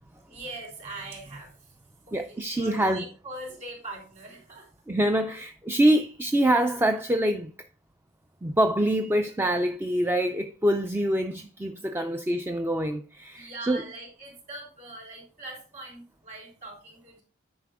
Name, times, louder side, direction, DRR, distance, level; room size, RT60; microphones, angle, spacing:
voice 1, 0.3-1.7 2.1-4.7 13.3-17.2, right 2 dB, 35° right, 3.3 m, -42 dB
voice 2, 2.1-3.0 4.9-7.5 8.4-13.8, right 1 dB, 10° right, 0.4 m, -25 dB
9.4 x 5.4 x 3.6 m
head